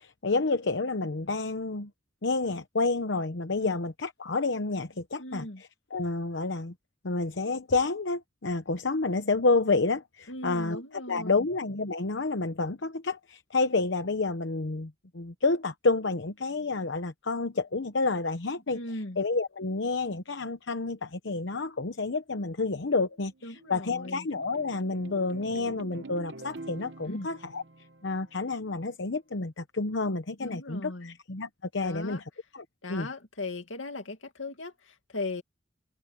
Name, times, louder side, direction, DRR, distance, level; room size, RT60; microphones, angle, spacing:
voice 1, 0.0-1.9 2.2-6.7 7.0-10.8 11.1-18.8 19.2-27.6 28.0-32.2 32.5-33.1, left 3 dB, 70° left, 0.9 m, -29 dB
voice 2, 5.2-5.6 10.3-11.5 18.7-19.2 23.4-24.3 27.1-27.3 30.4-31.2 31.8-32.2 32.8-35.4, left 2 dB, 85° left, 2.4 m, -38 dB
sound 1, 23.1-28.7, right 2 dB, 65° right, 1.0 m, -46 dB
open air
head